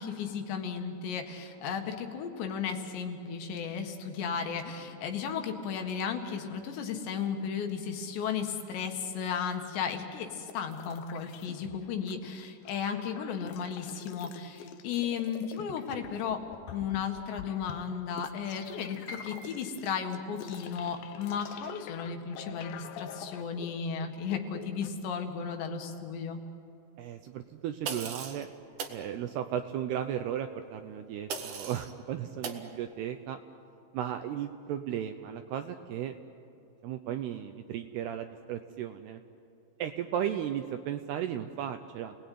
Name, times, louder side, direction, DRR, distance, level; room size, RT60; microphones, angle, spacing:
voice 1, 0.0-16.4 16.7-26.4, left 7 dB, 70° left, 4 dB, 3.8 m, -34 dB
sound 1, 10.5-12.1 12.4-24.9, left 9 dB, 90° left, 1.9 m, -47 dB
Piano, 19.1-25.0 25.3-26.5 26.9-27.0 27.7-28.0, left 2 dB, 20° left, 2.6 m, -53 dB
voice 2, 27.0-28.5 28.9-33.4 33.9-36.1 36.8-39.2 39.8-42.1, right 10 dB, 80° right, 7 dB, 2.4 m, -35 dB
sound 2, 27.8-28.4 28.8-29.0 31.3-31.9 32.4-32.6, right 6 dB, 55° right, 2.4 m, -37 dB
30.0 x 19.5 x 9.4 m, 2.8 s
omnidirectional pair, 5.5 m